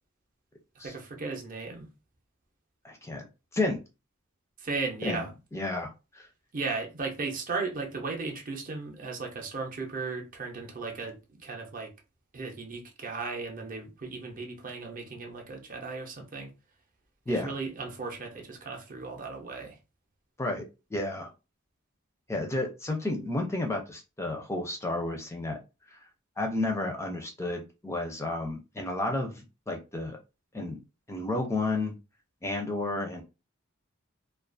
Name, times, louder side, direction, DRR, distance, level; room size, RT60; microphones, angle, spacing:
voice 1, 0.8-1.9 4.6-5.3 6.5-11.9 12.3-16.5 17.3-19.8, right 4 dB, 40° right, 0.6 m, -36 dB
voice 2, 2.8-3.2 3.5-3.8 5.0-6.3 17.3-17.5 20.4-21.3 22.3-25.6 25.9-26.0 26.4-30.2 30.5-30.8 31.1-32.0 32.4-33.2, left 2 dB, 15° left, 0.4 m, -32 dB
2.3 x 2.3 x 2.5 m
head